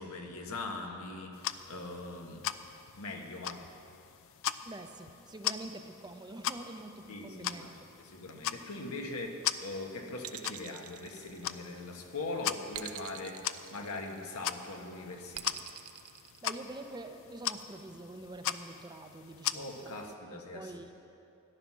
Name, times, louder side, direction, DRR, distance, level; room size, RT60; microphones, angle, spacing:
voice 1, 0.0-2.4 3.0-3.6 7.1-13.4 13.7-15.6 19.5-20.7, left 2 dB, 80° left, 2 dB, 1.5 m, -41 dB
sound 1, 1.3-20.1, left 11 dB, 65° left, 0.4 m, -40 dB
voice 2, 4.6-7.9 16.4-20.0 20.3-20.9, right 2 dB, 20° right, 7 dB, 0.6 m, -46 dB
sound 2, 10.2-11.9 12.7-14.4 15.3-16.9, right 11 dB, 70° right, 0.7 m, -45 dB
14.0 x 10.5 x 6.2 m, 2.8 s
head